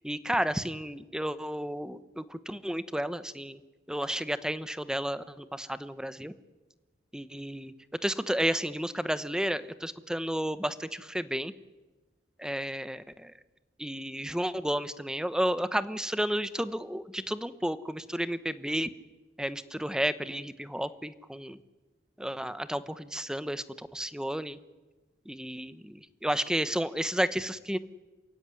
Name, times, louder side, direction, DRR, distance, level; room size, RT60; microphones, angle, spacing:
voice 1, 0.0-3.6 3.9-6.3 7.1-7.7 8.0-11.5 12.4-13.3 13.8-18.9 19.4-21.6 22.2-24.6 25.3-27.8, equal, 5° right, 13 dB, 0.9 m, -32 dB
28.0 x 16.0 x 9.9 m, 1.2 s
head